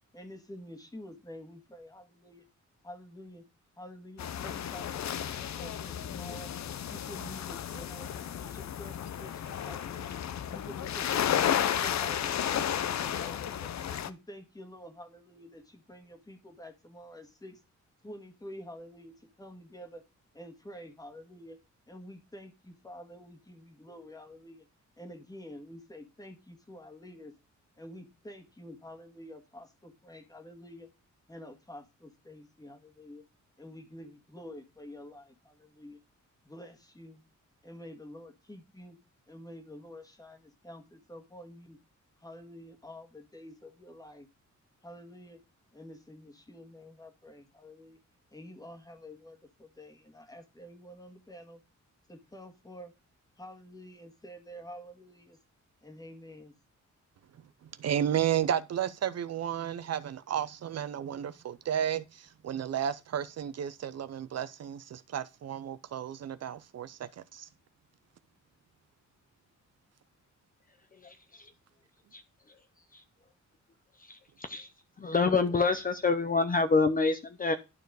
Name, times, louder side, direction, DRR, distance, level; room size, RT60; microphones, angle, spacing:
voice 1, 0.1-2.4 2.8-3.4 3.8-6.5 6.9-10.2 10.5-13.7 14.0-17.6 18.0-20.0 20.3-21.6 21.9-24.7 25.0-27.3 27.8-30.9 31.3-33.2 33.6-36.0 36.4-37.2 37.6-39.0 39.3-41.8 42.2-44.3 44.8-45.4 45.7-48.0 48.3-51.6 52.1-52.9 53.4-55.4 55.8-56.5, equal, 10° left, 1.7 m, -48 dB
sound 1, 4.2-14.1, left 9 dB, 65° left, 0.7 m, -33 dB
voice 2, 57.8-67.5, right 9 dB, 55° right, 0.5 m, -33 dB
voice 3, 70.9-71.5 72.1-72.2 74.0-74.7 75.0-77.5, left 4 dB, 30° left, 0.7 m, -27 dB
11.5 x 4.6 x 4.7 m
wide cardioid pair, 165°, 30 cm